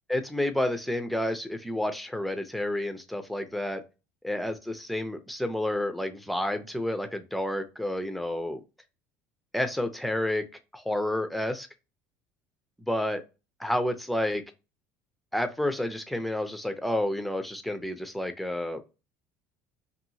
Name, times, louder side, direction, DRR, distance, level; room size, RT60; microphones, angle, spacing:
voice 1, 0.1-3.8 4.2-8.6 9.5-10.4 10.7-11.7 12.8-13.2 13.6-14.4 15.3-18.9, left 1 dB, ahead, 8 dB, 0.4 m, -30 dB
2.8 x 2.7 x 2.6 m, 0.29 s
cardioid pair, 135°, 6 cm